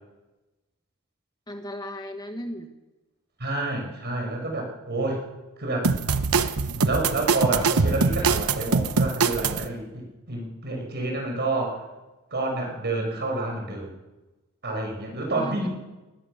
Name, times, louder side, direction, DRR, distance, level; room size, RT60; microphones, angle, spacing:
voice 1, 1.5-2.7 15.3-15.7, equal, 20° left, 5 dB, 1.4 m, -36 dB
voice 2, 3.4-5.2 5.6-5.9 6.8-11.8 12.3-13.9 14.6-15.7, right 2 dB, 50° right, 2 dB, 6.0 m, -29 dB
sound 1, 5.8-9.7, right 4 dB, 85° right, 1.0 m, -23 dB
20.5 x 19.5 x 6.7 m, 1.1 s
head